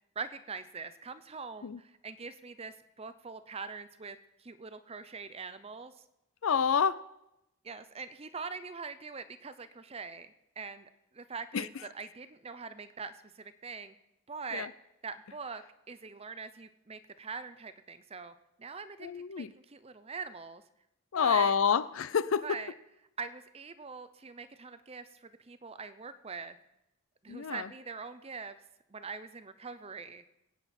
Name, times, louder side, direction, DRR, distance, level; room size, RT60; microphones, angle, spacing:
voice 1, 0.2-5.9 7.6-14.0 14.3-14.7 15.0-20.6 21.1-21.5 22.4-22.7 23.2-26.6 27.2-28.6 28.9-30.2, right 5 dB, 25° right, 0.6 m, -43 dB
voice 2, 6.4-7.0 11.5-11.7 14.5-14.7 19.0-19.5 21.1-22.6 27.3-27.7, left 7 dB, 65° left, 0.4 m, -28 dB
22.5 x 8.9 x 4.3 m
head